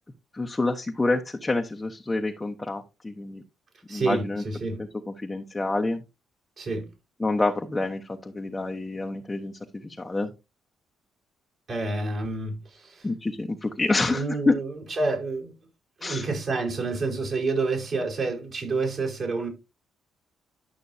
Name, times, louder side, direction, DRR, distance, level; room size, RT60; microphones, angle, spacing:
voice 1, 0.3-3.4 3.9-4.4 4.8-4.9 5.2-6.0 7.2-10.3 13.0-14.5 16.0-16.3, left 2 dB, 15° left, 1.0 m, -27 dB
voice 2, 3.9-4.8 6.6-6.9 11.7-13.1 14.1-15.5 16.0-19.5, right 3 dB, 50° right, 4.7 m, -29 dB
11.5 x 6.1 x 2.7 m
cardioid pair, 90°, 0 cm